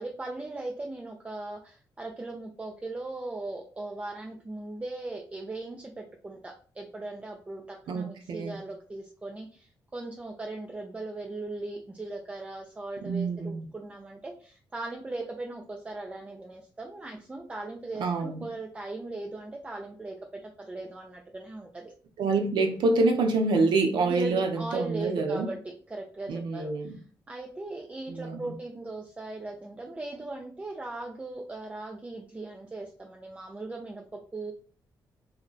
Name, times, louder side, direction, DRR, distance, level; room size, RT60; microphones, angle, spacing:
voice 1, 0.0-21.9 24.0-25.6 25.9-34.5, right 2 dB, 15° right, 1 dB, 0.5 m, -39 dB
voice 2, 7.9-8.6 13.0-13.7 18.0-18.5 22.2-25.5 26.3-27.0 28.1-28.5, right 3 dB, 75° right, 4 dB, 0.6 m, -27 dB
2.3 x 2.2 x 3.8 m, 0.41 s
cardioid pair, 95°, 8 cm